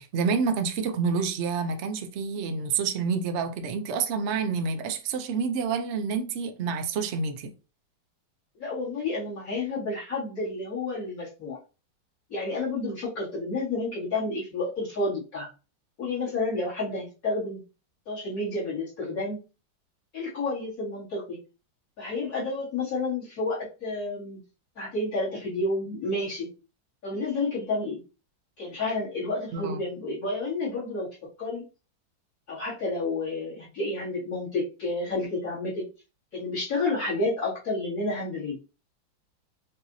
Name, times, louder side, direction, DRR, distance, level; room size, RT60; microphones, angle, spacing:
voice 1, 0.0-7.5 29.5-29.8, right 5 dB, 85° right, 0.6 m, -28 dB
voice 2, 8.6-11.6 12.3-15.5 16.0-17.6 18.1-19.4 20.1-21.4 22.0-24.4 24.8-26.5 27.0-28.0 28.6-31.1 31.4-31.6 32.5-35.8 36.3-38.6, left 2 dB, 45° left, 2.6 m, -30 dB
5.5 x 2.7 x 2.7 m
omnidirectional pair, 2.1 m